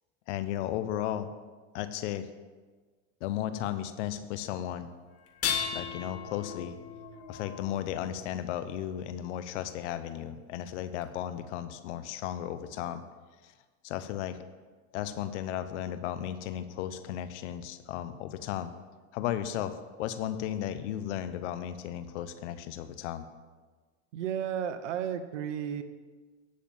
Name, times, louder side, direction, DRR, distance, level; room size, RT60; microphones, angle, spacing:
voice 1, 0.3-1.3 1.7-2.3 3.2-4.9 5.7-6.8 7.3-13.0 13.4-13.5 13.8-14.4 14.9-18.7 19.1-23.2, left 11 dB, 75° left, 11 dB, 0.9 m, -35 dB
sound 1, 5.3-8.5 10.1-10.2 11.0-11.1, left 7 dB, 40° left, 1.6 m, -36 dB
voice 2, 24.1-25.8, right 9 dB, 90° right, 10 dB, 1.0 m, -33 dB
10.0 x 6.6 x 7.2 m, 1.4 s
supercardioid pair, 105°, 35 cm